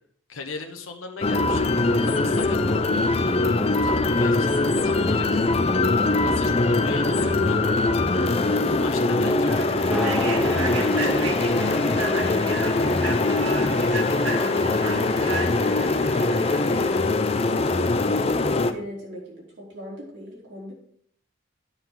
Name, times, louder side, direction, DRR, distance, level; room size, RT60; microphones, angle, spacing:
voice 1, 0.3-1.7 2.0-3.0 3.8-4.5 4.8-5.4 6.2-7.8 8.5-11.8, left 3 dB, 90° left, 4 dB, 0.9 m, -38 dB
sound 1, 1.2-18.7, left 2 dB, 30° left, 0.5 m, -22 dB
voice 2, 2.5-2.9 5.4-5.7 8.8-9.0 12.7-15.9 16.4-20.7, equal, 55° right, -4 dB, 3.7 m, -40 dB
Human voice / Train, 8.1-8.2 8.7-8.8 9.4-16.9, right 2 dB, 80° right, 1.5 m, -34 dB
Motorcycle, 9.9-14.9, equal, ahead, 0.8 m, -33 dB
9.7 x 4.0 x 7.1 m, 0.65 s
head